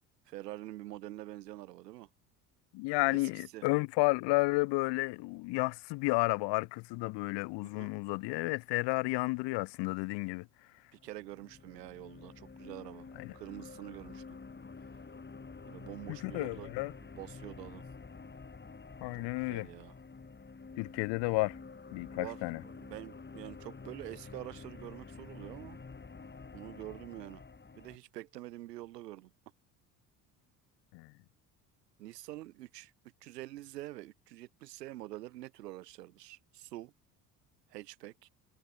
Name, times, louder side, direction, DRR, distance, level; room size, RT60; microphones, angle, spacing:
voice 1, 0.3-2.1 3.1-3.6 7.6-7.9 10.9-13.1 13.3-14.4 15.6-16.7 17.2-17.8 19.4-19.9 22.2-25.8 26.5-27.4 27.8-29.3 32.0-32.9 33.2-36.9 37.7-38.3, right 16 dB, 85° right, 4.0 m, -46 dB
voice 2, 2.7-10.5 13.2-13.3 16.1-16.9 19.0-19.7 20.8-21.6 21.9-22.6 30.9-31.1, left 25 dB, 60° left, 0.7 m, -32 dB
sound 1, 11.0-28.0, left 4 dB, 20° left, 4.7 m, -49 dB
hypercardioid pair, 65°, 47 cm